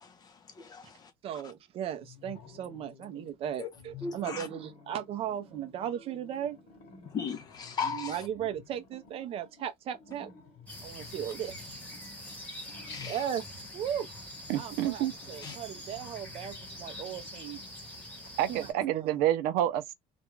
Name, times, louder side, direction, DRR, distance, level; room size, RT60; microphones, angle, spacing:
voice 1, 0.0-1.1 3.6-3.7 4.0-4.5 7.0-8.3 12.9-13.2 15.4-15.6, left 6 dB, 25° left, 0.6 m, -37 dB
voice 2, 1.2-6.6 7.8-10.3 10.8-11.8 13.0-13.5 13.7-14.1 14.5-17.6 18.5-19.2, right 9 dB, 40° right, 0.5 m, -37 dB
sound 1, 2.0-3.4 3.7-17.6, left 5 dB, 55° left, 1.0 m, -53 dB
sound 2, 10.7-18.7, left 1 dB, 10° left, 1.0 m, -45 dB
voice 3, 14.5-15.1 18.4-19.9, right 12 dB, 85° right, 0.5 m, -28 dB
2.5 x 2.2 x 3.0 m
cardioid pair, 175°, 15 cm